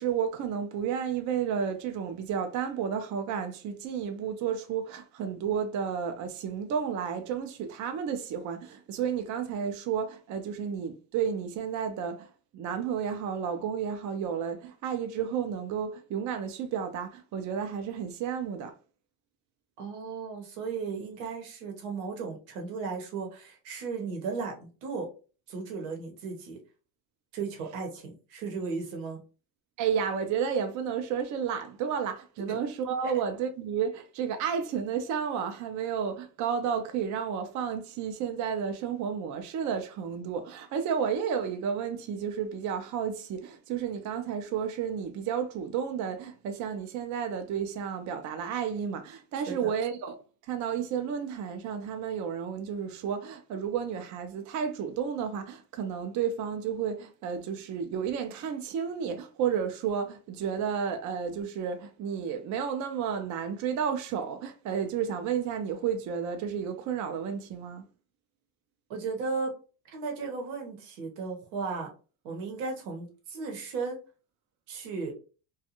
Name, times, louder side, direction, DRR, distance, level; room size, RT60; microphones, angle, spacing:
voice 1, 0.0-12.3 12.5-18.7 29.8-50.2 50.5-67.9, right 7 dB, 45° right, 0.5 m, -32 dB
voice 2, 19.8-25.1 25.5-26.6 27.3-29.2 32.5-32.6 33.0-33.1 49.5-49.7 68.9-69.5 69.9-71.9 72.2-74.0 74.7-75.1, right 4 dB, 90° right, 0.9 m, -35 dB
2.5 x 2.3 x 2.8 m
supercardioid pair, 95°, 40 cm